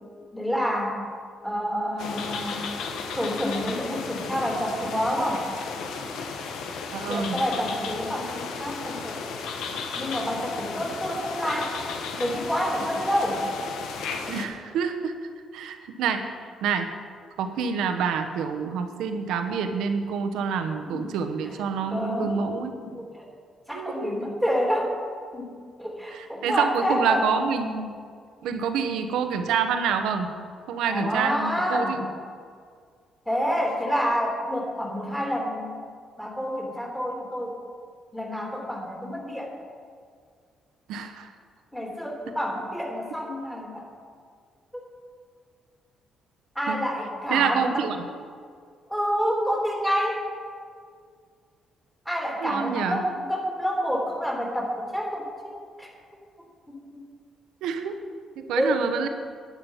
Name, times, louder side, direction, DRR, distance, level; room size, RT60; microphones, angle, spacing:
voice 1, 0.3-1.0 1.4-2.7 3.2-5.5 7.1-9.2 10.0-11.8 12.2-13.4 20.8-21.1 21.4-21.6 21.9-23.3 23.7-24.9 25.3-27.3 30.9-32.0 33.2-35.8 36.2-37.6 38.1-39.5 41.7-43.9 46.5-47.9 48.9-50.2 52.0-55.9 56.7-57.0 58.5-58.8, equal, 5° left, -1 dB, 3.2 m, -28 dB
sound 1, 2.0-14.5, left 5 dB, 85° left, 1.2 m, -34 dB
voice 2, 6.9-7.3 14.3-15.1 15.5-16.3 16.6-16.9 17.4-22.7 23.7-24.1 26.1-28.0 28.4-30.3 30.7-32.0 40.9-41.3 46.7-46.8 47.3-47.9 52.4-53.0 57.6-57.9 58.4-59.1, right 6 dB, 90° right, 6 dB, 1.1 m, -27 dB
11.5 x 9.7 x 5.7 m, 2.1 s
cardioid pair, 90°, 0 cm